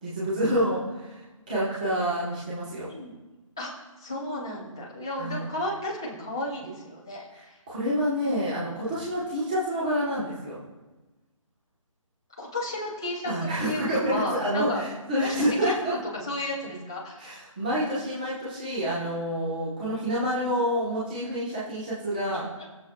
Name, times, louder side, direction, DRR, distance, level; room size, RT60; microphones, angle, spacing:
voice 1, 0.0-2.9 5.2-5.5 7.3-10.6 13.2-15.9 17.2-22.4, equal, 15° right, -8 dB, 1.2 m, -28 dB
voice 2, 3.6-7.6 12.4-14.8 15.2-17.4 22.3-22.6, left 1 dB, 10° left, -7 dB, 0.5 m, -34 dB
20.0 x 7.2 x 2.4 m, 1.2 s
hypercardioid pair, 180°, 17 cm